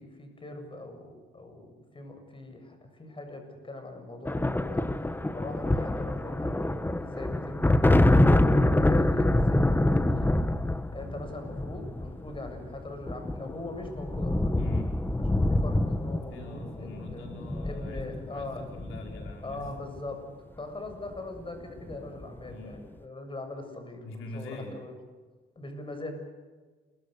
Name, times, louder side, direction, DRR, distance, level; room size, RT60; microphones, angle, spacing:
voice 1, 0.0-6.7 7.0-10.4 10.9-14.6 15.3-17.2 17.6-18.7 19.4-25.0 25.6-26.1, left 2 dB, 25° left, 6 dB, 7.5 m, -41 dB
sound 1, 4.3-20.0 21.2-21.4 21.7-22.4, left 1 dB, 10° left, 1.4 m, -26 dB
voice 2, 14.6-14.9 16.3-19.7 22.4-22.8 24.0-24.8, left 2 dB, 90° left, 2 dB, 5.0 m, -43 dB
28.0 x 23.5 x 6.9 m, 1.4 s
cardioid pair, 90°, 20 cm